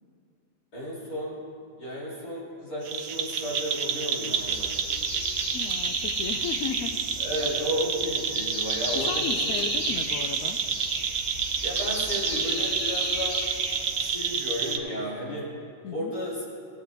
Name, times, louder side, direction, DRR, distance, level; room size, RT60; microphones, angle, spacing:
voice 1, 0.7-1.4 1.8-5.2 7.2-9.6 11.6-13.4 14.0-15.5 15.9-16.5, equal, 50° left, -5 dB, 2.9 m, -33 dB
sound 1, 2.9-14.8, right 6 dB, 65° right, 0.9 m, -29 dB
sound 2, 4.4-14.2, equal, 35° left, 2.9 m, -34 dB
voice 2, 5.5-7.0 8.9-10.6 15.8-16.1, left 8 dB, 85° left, 10 dB, 0.7 m, -35 dB
17.5 x 8.0 x 3.4 m, 2.3 s
omnidirectional pair, 2.1 m